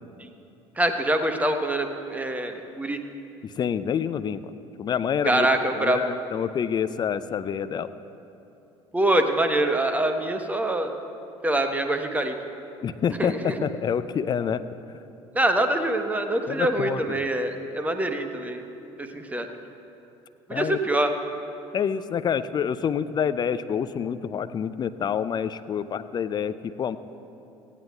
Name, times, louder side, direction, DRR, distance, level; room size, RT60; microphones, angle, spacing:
voice 1, 0.8-3.0 5.2-6.0 8.9-11.0 11.4-12.3 13.2-13.6 15.3-18.6 19.0-19.5 20.5-21.1, right 1 dB, 10° right, 6 dB, 1.0 m, -24 dB
voice 2, 3.4-4.5 4.8-5.5 5.8-7.9 12.8-14.6 16.5-17.2 20.5-20.8 21.7-27.0, left 7 dB, 30° left, 13 dB, 0.5 m, -27 dB
18.0 x 15.5 x 2.3 m, 2.8 s
figure-of-eight pair, 65°, 15 cm